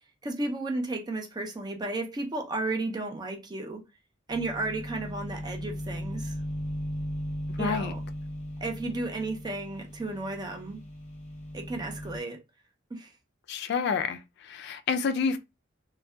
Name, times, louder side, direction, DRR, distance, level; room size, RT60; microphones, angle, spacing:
voice 1, 0.2-3.8 4.3-6.4 7.6-8.0 8.6-10.8 11.5-12.4 12.9-13.1, right 2 dB, 20° right, 0.5 m, -33 dB
sound 1, 4.3-12.2, equal, 35° left, 0.7 m, -37 dB
voice 2, 7.5-7.9 13.5-15.4, left 5 dB, 55° left, 0.3 m, -29 dB
2.6 x 2.1 x 2.2 m
head